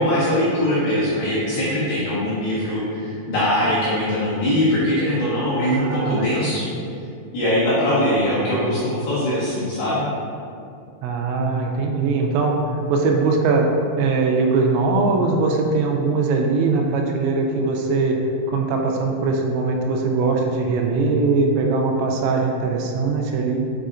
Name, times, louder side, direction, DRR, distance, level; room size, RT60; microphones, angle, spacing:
voice 1, 0.0-6.7 7.3-10.0, left 1 dB, 65° left, -11 dB, 2.5 m, -21 dB
voice 2, 5.6-6.5 8.5-8.6 11.0-12.6 12.9-13.7 14.0-18.2 18.5-23.6, right 4 dB, 90° right, 1 dB, 3.3 m, -21 dB
6.6 x 5.7 x 2.5 m, 2.4 s
omnidirectional pair, 5.8 m